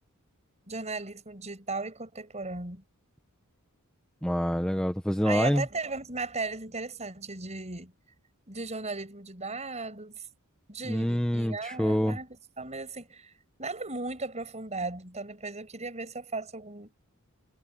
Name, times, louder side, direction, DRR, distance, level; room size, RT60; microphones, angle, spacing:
voice 1, 0.7-2.8 5.2-7.9 8.5-10.2 10.7-13.3 13.6-16.9, right 3 dB, 30° right, 7.3 m, -36 dB
voice 2, 4.2-5.7 10.8-12.2, equal, 5° left, 1.0 m, -26 dB
head